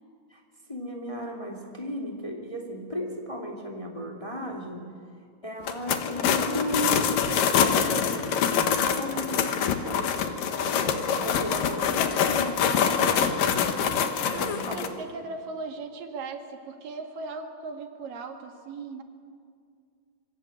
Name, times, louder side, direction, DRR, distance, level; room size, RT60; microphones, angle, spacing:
voice 1, 0.7-4.9 5.4-13.4 14.3-14.9, left 1 dB, 10° left, 1 dB, 2.2 m, -35 dB
sound 1, 5.6-14.9, left 7 dB, 90° left, 3.1 m, -25 dB
voice 2, 14.3-19.0, right 3 dB, 85° right, 4 dB, 3.7 m, -38 dB
26.5 x 23.0 x 8.6 m, 2.2 s
omnidirectional pair, 3.8 m